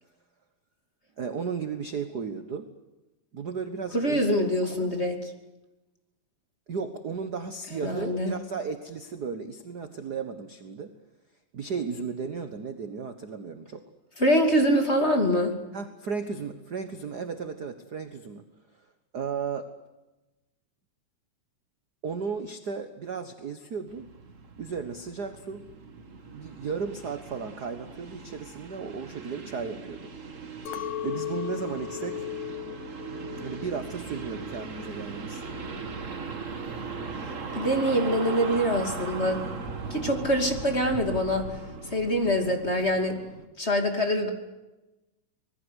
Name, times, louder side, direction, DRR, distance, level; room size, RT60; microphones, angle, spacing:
voice 1, 1.2-2.7 3.3-4.9 6.7-10.9 11.5-13.9 15.7-18.5 19.1-19.7 22.0-24.1 24.6-25.6 26.3-30.3 31.0-32.2 33.4-35.4, right 5 dB, 55° right, 9 dB, 1.0 m, -35 dB
voice 2, 3.9-5.3 7.8-8.3 14.2-15.6 37.5-39.4 39.9-41.6 41.9-43.2 43.6-44.3, equal, 20° left, 5 dB, 2.5 m, -24 dB
sound 1, 23.9-43.4, right 4 dB, 35° right, 1.3 m, -39 dB
Chink clink, 30.7-35.1 35.4-36.0, left 14 dB, 90° left, 3.3 m, -38 dB
25.5 x 20.5 x 8.2 m, 1.0 s
omnidirectional pair, 3.8 m